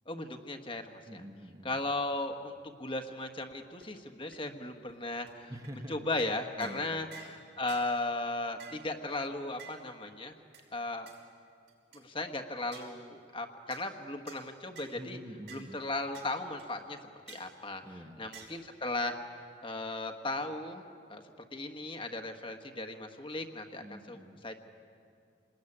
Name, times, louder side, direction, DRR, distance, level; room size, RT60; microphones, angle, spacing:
voice 1, 0.1-1.2 1.6-5.5 5.9-10.3 10.7-11.1 11.9-15.2 15.5-17.0 17.3-19.2 19.6-20.8 21.1-21.2 21.5-24.5, left 2 dB, 25° left, 6 dB, 1.4 m, -36 dB
voice 2, 1.1-1.7 5.5-6.1 6.6-6.9 14.9-15.8 17.8-18.3 23.8-24.4, equal, 20° right, 4 dB, 1.3 m, -46 dB
sound 1, 3.5-3.6 3.8-3.9 4.3-4.4 4.9-5.0 5.3-5.4 5.6-5.8 6.2-6.3 6.6-6.8 7.1-7.4 7.7-7.9 8.6-8.8 9.6-9.8 10.5-10.6 11.1-11.2 11.7-12.0 12.7-12.9 13.7-13.9 14.3-14.4 14.8-15.0 15.5-15.6 16.1-16.3 16.6-16.7 17.3-17.5 18.3-18.5, right 6 dB, 60° right, 6.1 m, -51 dB
27.5 x 20.5 x 9.9 m, 2.4 s
head